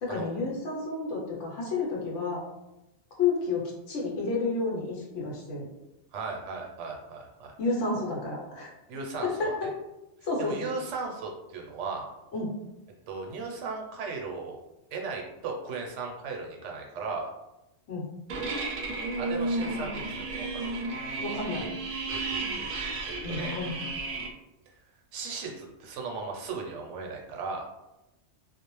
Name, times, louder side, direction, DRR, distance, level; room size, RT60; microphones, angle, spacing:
voice 1, 0.0-2.4 3.2-5.7 7.6-8.7 9.2-9.5 10.2-10.5 12.3-12.5 17.9-18.1 21.2-21.6 23.2-23.8, left 3 dB, 80° left, -3 dB, 1.1 m, -30 dB
voice 2, 6.1-7.5 8.9-9.7 10.4-12.1 13.1-14.6 14.9-17.3 19.2-20.8 21.6-21.7 22.1-22.7 23.0-23.6 25.1-27.7, right 4 dB, 80° right, 0 dB, 0.9 m, -37 dB
sound 1, 18.3-24.3, right 2 dB, 60° right, 0.6 m, -33 dB
2.4 x 2.0 x 2.9 m, 0.93 s
omnidirectional pair, 1.2 m